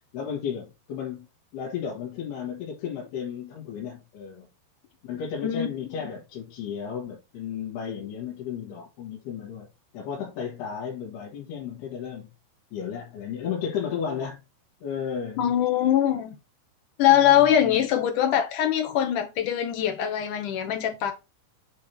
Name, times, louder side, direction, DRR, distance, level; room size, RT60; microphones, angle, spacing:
voice 1, 0.1-1.3 1.5-4.5 5.0-9.7 9.9-12.3 12.7-14.4 14.8-15.5 17.1-17.9, left 7 dB, 85° left, 3.7 m, -34 dB
voice 2, 5.4-6.0 15.4-16.4 17.0-21.1, left 10 dB, 65° left, 2.4 m, -22 dB
8.4 x 3.3 x 4.4 m
omnidirectional pair, 4.5 m